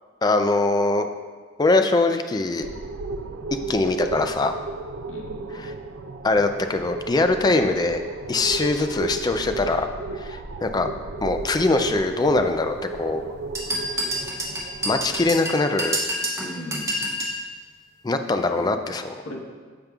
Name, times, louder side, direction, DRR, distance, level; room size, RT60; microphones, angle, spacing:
voice 1, 0.2-1.1 1.6-2.7 3.7-4.6 5.5-5.7 6.2-8.0 8.3-9.9 10.2-10.9 11.2-13.2 14.8-16.0 18.0-19.1, left 2 dB, 20° left, 7 dB, 0.4 m, -22 dB
sound 1, 2.6-15.3, right 3 dB, 70° right, 0.4 m, -34 dB
voice 2, 5.1-5.7 16.4-17.3 18.4-18.7 19.2-19.5, equal, 75° left, -1 dB, 1.2 m, -38 dB
sound 2, 13.5-17.4, equal, 15° right, 1.0 m, -28 dB
13.5 x 5.2 x 2.4 m, 1.5 s
head